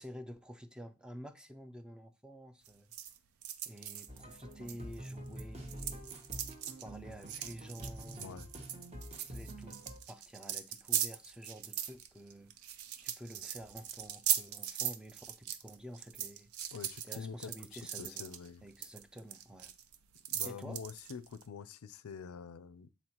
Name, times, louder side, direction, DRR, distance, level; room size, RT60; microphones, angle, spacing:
voice 1, 0.0-2.9 3.7-6.1 6.8-8.3 9.3-12.6 13.0-16.7 17.0-18.3 18.6-19.7 20.4-20.8, equal, 5° right, 0.4 m, -50 dB
sound 1, 2.6-5.4 5.7-21.4, right 10 dB, 90° right, 0.5 m, -39 dB
sound 2, 4.1-10.0, equal, 30° right, 1.0 m, -47 dB
voice 2, 8.2-8.5 16.7-18.6 20.3-22.9, left 6 dB, 85° left, 0.4 m, -46 dB
7.9 x 4.2 x 2.9 m
head